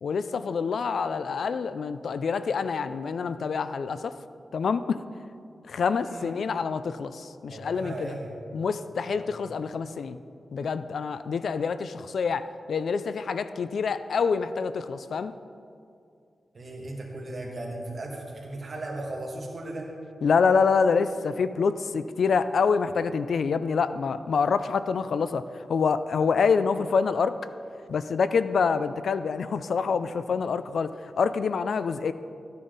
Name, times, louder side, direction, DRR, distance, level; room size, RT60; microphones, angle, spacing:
voice 1, 0.0-4.1 4.5-5.0 5.7-8.1 8.5-10.2 10.5-15.3 20.2-25.4 25.7-27.4 27.9-30.9 31.2-32.1, left 5 dB, 75° left, 12 dB, 0.4 m, -26 dB
voice 2, 6.0-6.4 7.5-8.3 9.1-9.3 16.5-19.9, right 2 dB, 45° right, -1 dB, 2.1 m, -37 dB
13.5 x 9.4 x 4.0 m, 2.4 s
wide cardioid pair, 100°, 0 cm